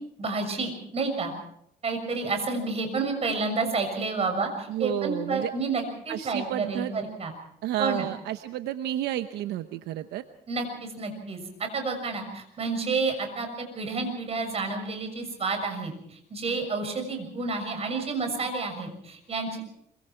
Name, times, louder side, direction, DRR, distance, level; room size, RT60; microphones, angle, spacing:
voice 1, 0.2-1.3 1.8-7.3 7.8-8.1 10.5-13.5 13.7-19.6, right 3 dB, 35° right, 5 dB, 6.6 m, -30 dB
voice 2, 4.7-5.5 6.1-6.9 7.6-10.2, right 13 dB, 85° right, 9 dB, 1.0 m, -31 dB
26.0 x 24.0 x 4.6 m, 0.71 s
cardioid pair, 110°, 17 cm